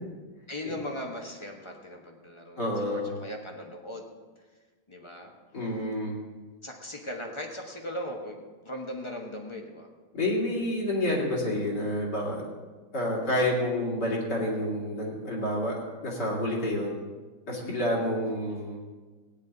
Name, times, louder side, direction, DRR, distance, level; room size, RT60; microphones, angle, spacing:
voice 1, 0.5-4.1 4.9-5.3 6.6-9.9 17.5-17.8, left 1 dB, 20° left, 2 dB, 0.9 m, -39 dB
voice 2, 2.6-3.1 5.5-6.2 10.1-12.4 12.9-16.9 17.5-18.8, left 1 dB, 55° left, -3 dB, 3.2 m, -29 dB
16.5 x 9.7 x 4.0 m, 1.3 s
omnidirectional pair, 2.3 m